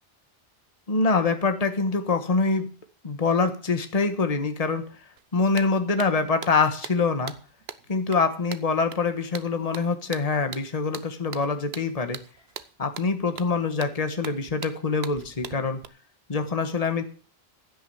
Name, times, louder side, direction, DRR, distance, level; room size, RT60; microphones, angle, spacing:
voice 1, 0.9-2.7 3.0-4.8 5.3-7.3 7.9-12.2 12.8-15.8 16.3-17.0, left 4 dB, 35° left, 8 dB, 1.4 m, -25 dB
sound 1, 5.2-5.3 5.6-15.8, right 8 dB, 75° right, 1.1 m, -41 dB
15.5 x 6.4 x 7.8 m, 0.40 s
omnidirectional pair, 1.1 m